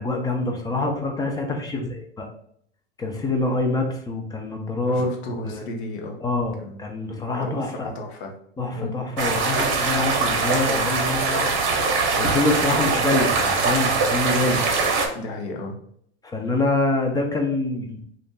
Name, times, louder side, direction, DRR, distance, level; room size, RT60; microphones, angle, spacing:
voice 1, 0.0-2.3 3.0-5.1 5.4-5.6 6.2-7.9 8.6-11.4 12.2-14.6 16.2-18.2, left 2 dB, 10° left, 2 dB, 0.5 m, -25 dB
voice 2, 4.9-6.1 6.6-6.9 7.4-8.3 8.8-9.0 15.1-15.8, left 1 dB, 70° left, 1 dB, 1.0 m, -33 dB
sound 1, 9.2-15.1, right 4 dB, 35° right, 0.8 m, -22 dB
2.9 x 2.5 x 3.6 m, 0.66 s
hypercardioid pair, 110°, 34 cm